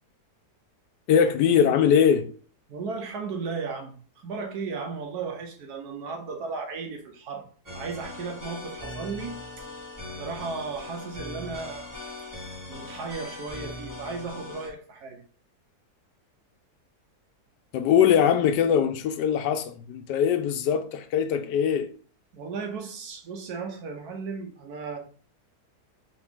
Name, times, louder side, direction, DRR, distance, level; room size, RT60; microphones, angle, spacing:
voice 1, 1.1-2.3 17.7-21.9, left 8 dB, 90° left, 1.2 m, -22 dB
voice 2, 2.7-7.5 7.7-9.4 10.1-11.8 12.7-15.2 22.3-25.0, right 4 dB, 70° right, 1.3 m, -35 dB
sound 1, 7.7-14.7, left 2 dB, 10° right, 1.7 m, -40 dB
3.9 x 2.9 x 3.6 m
omnidirectional pair, 1.8 m